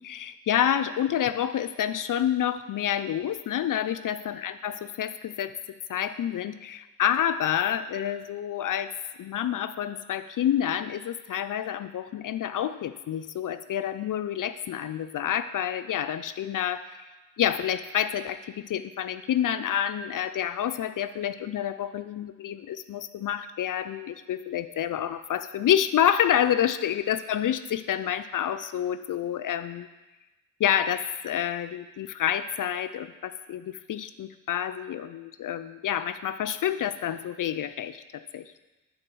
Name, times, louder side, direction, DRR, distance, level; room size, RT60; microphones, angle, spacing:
voice 1, 0.0-5.5 5.9-8.9 9.2-17.1 17.4-29.9 30.6-38.6, left 10 dB, 65° left, 11 dB, 0.4 m, -28 dB
9.7 x 3.9 x 6.1 m, 1.1 s
cardioid pair, 60°, 35 cm